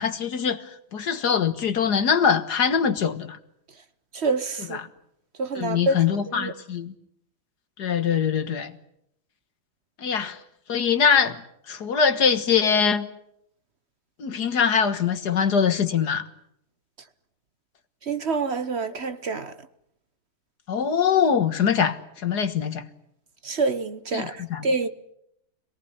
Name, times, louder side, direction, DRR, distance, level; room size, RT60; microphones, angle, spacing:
voice 1, 0.0-3.4 4.7-4.8 5.6-6.9 7.8-8.8 10.0-10.4 10.7-11.4 11.7-13.1 14.2-16.3 20.7-22.9 24.1-24.7, left 7 dB, 50° left, 1.8 m, -23 dB
voice 2, 4.1-4.8 5.4-6.0 6.3-6.5 18.0-19.5 23.4-24.9, right 3 dB, 40° right, 1.0 m, -27 dB
26.5 x 18.5 x 10.0 m
omnidirectional pair, 2.4 m